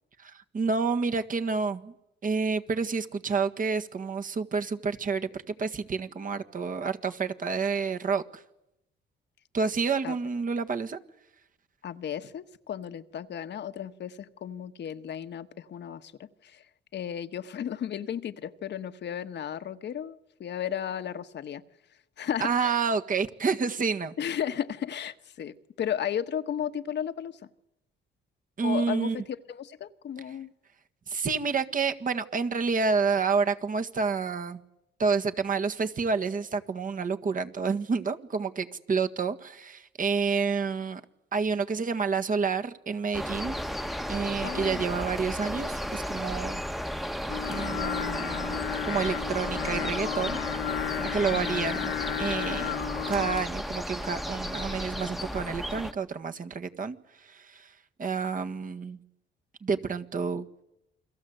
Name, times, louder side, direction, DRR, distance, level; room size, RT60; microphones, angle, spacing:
voice 1, 0.2-1.9 2.2-8.4 9.5-11.0 22.4-24.1 28.6-29.2 31.1-34.6 35.0-41.0 41.3-43.6 44.1-46.6 47.5-48.6 48.9-50.4 51.0-52.7 53.1-57.0 57.2-57.7 58.0-59.0 59.6-60.4, right 5 dB, 45° right, 7 dB, 1.8 m, -29 dB
voice 2, 11.8-16.6 16.9-21.6 22.2-22.8 24.2-27.4 28.6-29.2 29.5-30.5 44.4-44.9 51.3-51.5, left 9 dB, 60° left, 10 dB, 1.4 m, -34 dB
sound 1, 43.1-55.9, equal, ahead, 1.3 m, -34 dB
Singing, 47.3-53.4, left 11 dB, 75° left, 1.6 m, -33 dB
29.0 x 22.5 x 8.1 m, 0.87 s
cardioid pair, 90°, 20 cm